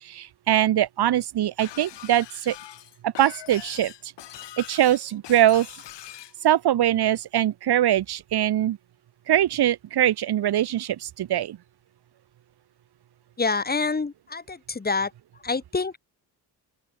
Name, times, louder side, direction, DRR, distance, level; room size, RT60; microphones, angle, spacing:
voice 1, 0.0-2.6 3.0-4.1 4.6-5.7 6.4-8.8 9.3-11.6, right 12 dB, 65° right, 2.5 m, -22 dB
Shatter, 1.6-6.4, left 13 dB, 75° left, 6.7 m, -42 dB
voice 2, 13.4-15.1 15.4-16.0, left 4 dB, 20° left, 5.3 m, -27 dB
open air
cardioid pair, 140°, 42 cm